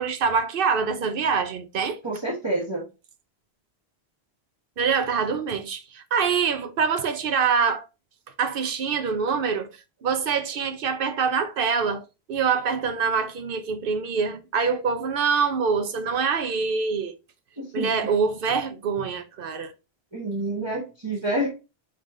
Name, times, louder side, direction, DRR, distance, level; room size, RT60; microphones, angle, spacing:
voice 1, 0.0-2.0 4.8-7.9 8.4-9.7 10.0-12.0 12.3-17.1 17.7-19.7, right 5 dB, 60° right, 0.8 m, -25 dB
voice 2, 2.0-2.8 17.6-18.1 20.1-21.5, right 1 dB, 25° right, 1.2 m, -28 dB
5.4 x 3.4 x 2.5 m
omnidirectional pair, 1.1 m